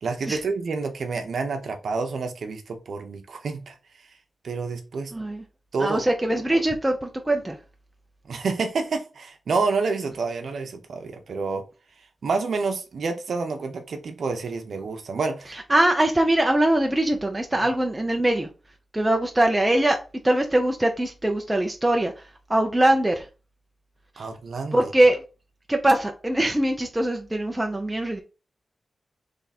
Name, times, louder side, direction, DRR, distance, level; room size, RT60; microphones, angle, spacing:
voice 1, 0.0-3.8 4.4-5.1 5.7-6.0 8.3-11.6 12.2-15.5 24.2-24.9, right 4 dB, 65° right, 0.8 m, -28 dB
voice 2, 5.1-5.4 5.8-7.6 15.7-18.5 18.9-20.0 20.2-22.1 22.5-23.3 24.7-25.2 25.7-28.2, right 1 dB, 10° right, 0.5 m, -22 dB
3.6 x 3.3 x 4.2 m
wide cardioid pair, 170°, 0 cm